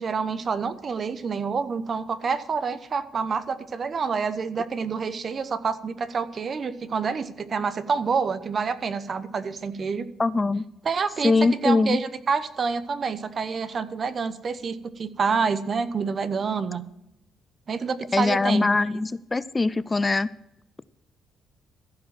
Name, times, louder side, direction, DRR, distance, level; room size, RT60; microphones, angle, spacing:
voice 1, 0.0-10.1 10.8-16.8 17.7-18.9, right 5 dB, 45° right, 13 dB, 0.8 m, -28 dB
voice 2, 10.2-10.6 11.2-12.0 18.1-20.3, left 3 dB, 25° left, 18 dB, 0.3 m, -22 dB
14.5 x 5.1 x 7.4 m, 0.83 s
cardioid pair, 90°, 0 cm